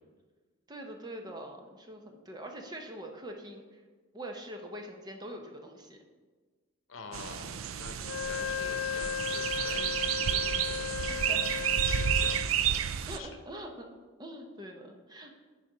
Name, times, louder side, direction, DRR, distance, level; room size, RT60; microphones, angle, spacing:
voice 1, 0.7-3.8 4.1-6.0 11.0-11.4 13.1-13.9 14.2-15.4, right 1 dB, 20° right, 3 dB, 0.8 m, -43 dB
voice 2, 6.9-11.1 11.4-11.5 11.9-12.4 13.1-13.4, left 4 dB, 70° left, 6 dB, 0.9 m, -47 dB
sound 1, 7.1-13.2, right 8 dB, 85° right, 0.4 m, -31 dB
Wind instrument woodwind instrument, 8.0-12.5, left 8 dB, 85° left, 0.4 m, -35 dB
9.9 x 4.2 x 5.0 m, 1.4 s
head